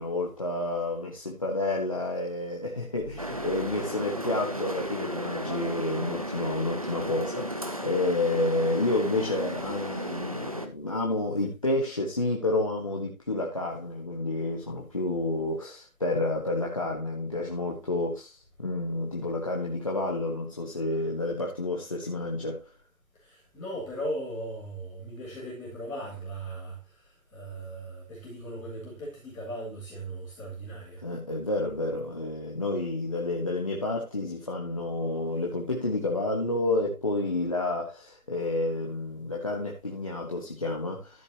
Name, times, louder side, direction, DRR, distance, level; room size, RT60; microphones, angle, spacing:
voice 1, 0.0-22.7 31.0-41.2, left 2 dB, 25° left, 1.5 m, -30 dB
sound 1, 3.2-10.7, equal, 25° right, 0.9 m, -34 dB
voice 2, 23.2-26.8 27.3-31.0, right 1 dB, 5° left, 2.1 m, -38 dB
14.0 x 7.9 x 2.9 m
figure-of-eight pair, 175°, 42 cm